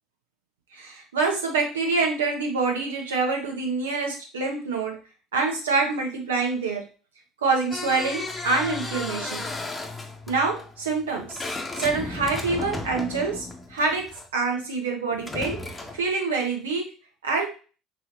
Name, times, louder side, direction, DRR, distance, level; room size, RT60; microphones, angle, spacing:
voice 1, 0.7-4.9 5.3-6.8 7.4-9.5 10.3-11.4 11.8-14.1 14.3-15.6 15.9-16.9 17.2-17.5, right 4 dB, 80° right, 1 dB, 1.1 m, -26 dB
sound 1, 7.7-14.3 15.1-16.1, left 2 dB, 20° left, 0.9 m, -34 dB
5.3 x 3.1 x 3.1 m, 0.36 s
figure-of-eight pair, 60°, 0 cm